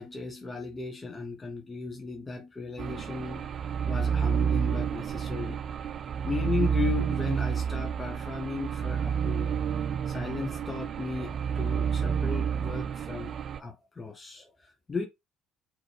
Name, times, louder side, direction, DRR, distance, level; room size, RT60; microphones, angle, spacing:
voice 1, 0.0-5.6 6.2-9.6 10.1-15.1, left 4 dB, 25° left, 0.9 m, -36 dB
sound 1, 2.8-13.6, right 7 dB, 45° right, 0.3 m, -29 dB
3.9 x 3.1 x 3.3 m
figure-of-eight pair, 55°, 0 cm